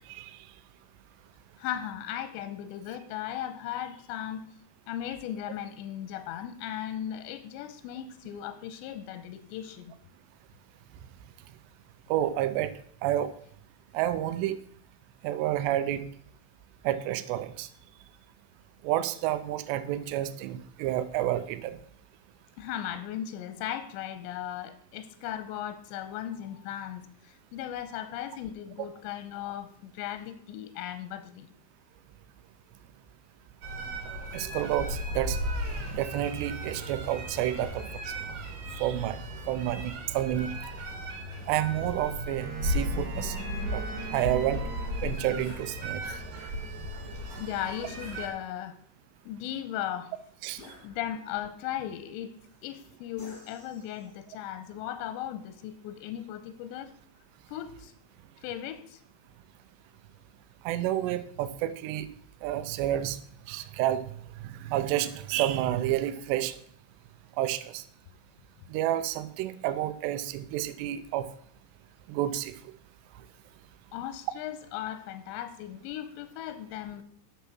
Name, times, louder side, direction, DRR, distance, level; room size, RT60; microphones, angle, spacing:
voice 1, 1.6-4.4 4.9-9.9 22.6-31.5 47.4-48.7 49.3-50.1 50.8-52.3 52.6-56.9 57.5-57.9 58.4-59.0 73.9-77.0, left 11 dB, 85° left, 11 dB, 2.8 m, -37 dB
voice 2, 12.1-12.7 13.0-13.3 13.9-14.6 15.2-16.0 16.8-17.7 18.8-21.8 34.3-35.4 35.7-37.8 38.7-39.2 39.5-40.5 41.5-43.4 43.7-43.8 44.1-44.6 45.0-46.0 50.4-50.6 60.7-62.1 62.4-63.2 63.5-64.0 64.4-66.6 67.4-67.8 68.7-71.3 72.1-72.5, right 12 dB, 80° right, 12 dB, 2.6 m, -29 dB
sound 1, 33.6-48.3, equal, 60° right, 2.8 m, -35 dB
Wind instrument woodwind instrument, 42.4-45.9, right 1 dB, 35° right, 1.6 m, -46 dB
sound 2, 45.4-45.7 48.0-48.8 50.6-51.4 53.2-54.3, left 2 dB, 40° left, 1.6 m, -53 dB
9.7 x 6.8 x 6.1 m, 0.63 s
omnidirectional pair, 5.5 m